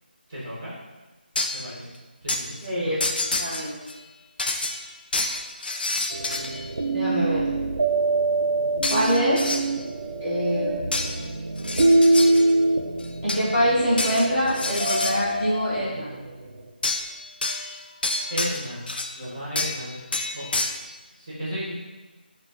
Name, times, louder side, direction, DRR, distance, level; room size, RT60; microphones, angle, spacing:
voice 1, 0.3-0.7 1.5-1.9 2.2-2.9 18.3-18.8 19.1-19.9 20.3-20.4 21.2-21.7, equal, 20° right, -10 dB, 0.8 m, -33 dB
sound 1, 1.4-1.7 2.3-2.4 3.0-4.0 4.4-6.7 8.8-9.7 10.9-11.2 11.6-12.5 13.0-13.5 14.0-15.2 16.8-17.1 17.4-19.2 19.6-19.8 20.1-20.7, left 2 dB, 65° left, 0.4 m, -28 dB
voice 2, 2.6-3.8 6.9-7.4 8.9-9.4 10.2-10.9 13.2-16.1, equal, 15° left, -14 dB, 0.8 m, -24 dB
sound 2, 6.1-16.5, right 2 dB, 80° right, 0.4 m, -24 dB
4.9 x 2.2 x 2.4 m, 1.2 s
figure-of-eight pair, 180°, 6 cm